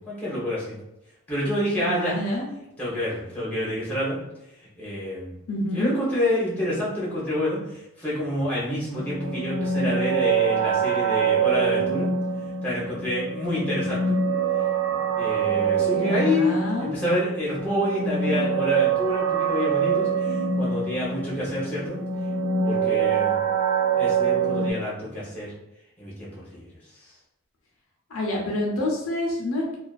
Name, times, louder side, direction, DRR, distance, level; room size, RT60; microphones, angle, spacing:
voice 1, 0.1-0.8 1.3-2.2 2.8-4.2 4.8-5.3 5.7-12.1 12.6-14.2 15.2-22.0 22.6-23.4 24.0-25.5 26.0-26.7 27.0-27.1, left 1 dB, 5° left, -8 dB, 0.7 m, -28 dB
voice 2, 1.8-2.5 5.5-6.0 16.0-16.9 28.1-29.8, left 1 dB, 70° left, -1 dB, 0.5 m, -28 dB
sound 1, 8.9-24.7, right 6 dB, 60° right, 0.5 m, -25 dB
2.4 x 2.3 x 2.3 m, 0.88 s
head